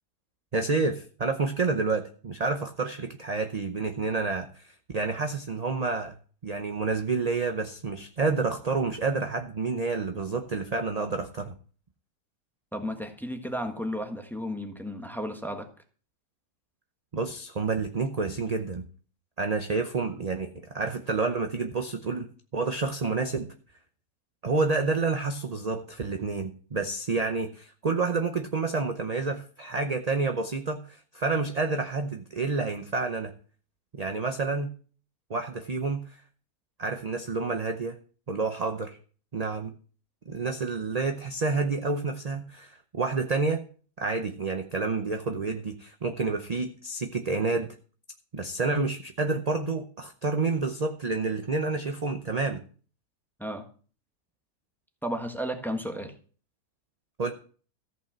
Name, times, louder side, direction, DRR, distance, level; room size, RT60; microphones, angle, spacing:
voice 1, 0.5-6.1 6.4-11.5 17.1-18.9 19.4-23.5 24.4-33.3 33.9-34.7 35.3-36.2 36.8-38.0 38.3-39.0 39.3-39.7 40.3-43.6 44.0-47.8 48.3-52.6 57.2-57.3, right 4 dB, 35° right, 6 dB, 0.6 m, -29 dB
voice 2, 12.7-15.7 53.4-53.6 55.0-56.1, equal, ahead, 5 dB, 1.2 m, -33 dB
14.5 x 5.8 x 7.3 m, 0.41 s
omnidirectional pair, 1.7 m